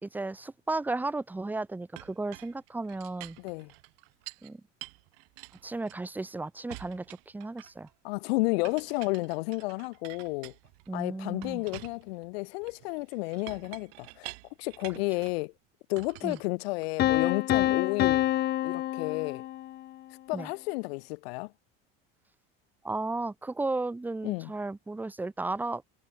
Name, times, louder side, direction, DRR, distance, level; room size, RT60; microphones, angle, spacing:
voice 1, 0.0-3.4 4.4-4.6 5.6-7.9 10.9-11.6 16.2-16.4 20.3-20.5 22.8-25.8, right 2 dB, 5° right, 0.9 m, -34 dB
Chink clink, 2.0-4.5 4.8-6.3 6.7-7.9 8.6-10.9 11.4-15.4 16.0-17.1, right 31 dB, 75° right, 3.0 m, -48 dB
voice 2, 3.4-3.7 8.0-10.5 10.9-14.3 14.6-15.5 15.9-18.3 18.6-19.4 20.3-21.5 24.2-24.5, left 25 dB, 80° left, 1.8 m, -32 dB
Piano, 17.0-19.9, left 14 dB, 35° left, 0.7 m, -27 dB
cardioid pair, 145°, 30 cm